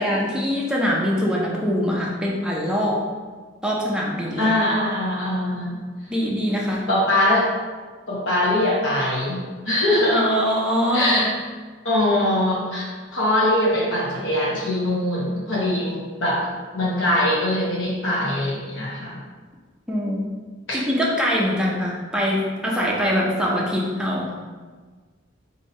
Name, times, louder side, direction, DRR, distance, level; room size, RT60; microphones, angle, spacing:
voice 1, 0.0-3.0 3.6-4.5 6.1-6.9 10.1-11.3 19.9-20.2 20.7-24.3, equal, 5° right, -4 dB, 0.6 m, -23 dB
voice 2, 4.4-5.8 6.9-7.5 8.1-10.2 10.9-11.3 11.8-16.5 16.7-19.2 20.7-20.8, left 1 dB, 80° left, -5 dB, 0.9 m, -22 dB
2.7 x 2.7 x 4.3 m, 1.4 s
head